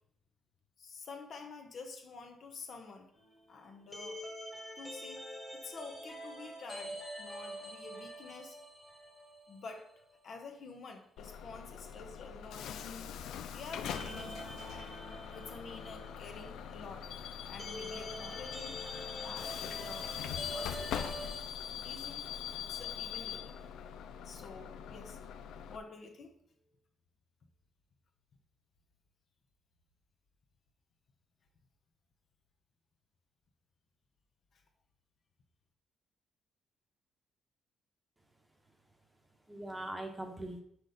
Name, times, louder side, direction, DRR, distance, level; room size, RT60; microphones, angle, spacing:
voice 1, 0.8-3.1 3.5-4.2 4.8-8.6 9.5-14.4 15.3-17.1 17.5-20.1 20.5-21.1 21.8-22.3 22.6-23.6 24.2-25.2 25.7-26.3, left 4 dB, 55° left, 4 dB, 1.0 m, -49 dB
sound 1, 3.1-9.8 10.1-10.2 13.8-21.4, equal, 5° left, 1.5 m, -46 dB
Bus / Alarm, 11.2-25.8, left 8 dB, 90° left, 0.4 m, -42 dB
voice 2, 38.6-40.6, right 1 dB, 10° right, 3 dB, 1.0 m, -43 dB
6.2 x 5.0 x 4.1 m, 0.67 s
cardioid pair, 125°, 0 cm